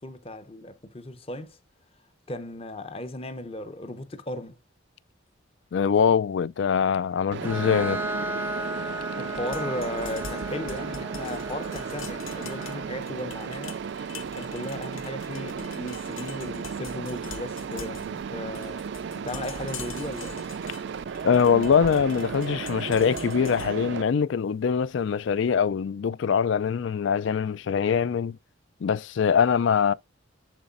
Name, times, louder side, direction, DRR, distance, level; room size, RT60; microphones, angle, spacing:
voice 1, 0.0-1.6 2.3-4.6 9.2-13.8 14.3-20.5, left 1 dB, 30° left, 0.8 m, -36 dB
voice 2, 5.7-8.0 21.2-28.4 28.8-29.9, left 6 dB, 65° left, 0.4 m, -23 dB
Mechanisms, 7.3-24.0, right 6 dB, 55° right, 0.3 m, -35 dB
Bowed string instrument, 7.4-13.0, right 1 dB, 10° right, 0.6 m, -35 dB
sound 1, 9.3-25.3, left 5 dB, 80° left, 1.1 m, -45 dB
11.0 x 4.0 x 2.5 m
head